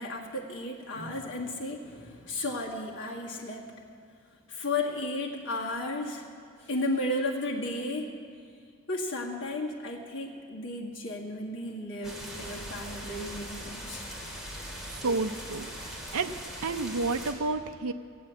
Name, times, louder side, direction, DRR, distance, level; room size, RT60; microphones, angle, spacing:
voice 1, 0.0-3.7 4.5-6.2 6.6-8.1 8.9-14.0, left 2 dB, 55° left, -3 dB, 2.0 m, -34 dB
sound 1, 12.0-17.3, equal, ahead, 2.4 m, -40 dB
voice 2, 15.0-16.3 16.6-17.9, right 3 dB, 75° right, 7 dB, 0.6 m, -30 dB
16.5 x 8.5 x 8.3 m, 2.3 s
head